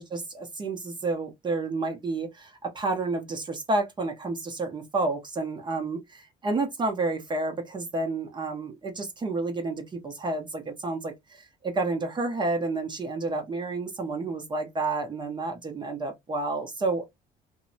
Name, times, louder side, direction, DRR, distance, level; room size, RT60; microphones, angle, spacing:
voice 1, 0.0-17.1, right 3 dB, 25° right, 0.6 m, -30 dB
2.6 x 2.0 x 2.6 m
cardioid pair, 110°, 17 cm